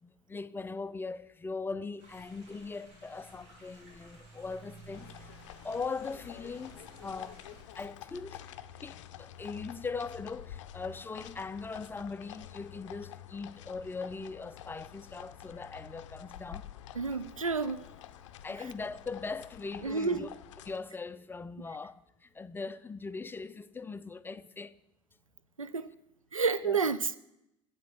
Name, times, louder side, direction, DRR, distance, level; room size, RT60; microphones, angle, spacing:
voice 1, 0.0-5.3 5.6-7.4 7.8-16.7 18.4-20.3 20.6-24.8 26.7-26.8, left 4 dB, 15° left, 0.4 m, -40 dB
sound 1, 2.0-7.6, right 2 dB, 60° right, 3.7 m, -54 dB
sound 2, 4.9-20.8, left 11 dB, 65° left, 0.5 m, -49 dB
voice 2, 16.9-17.9 19.8-20.3 25.6-25.9 26.3-27.1, right 5 dB, 90° right, 0.4 m, -30 dB
8.1 x 7.9 x 5.8 m
figure-of-eight pair, 70°, 17 cm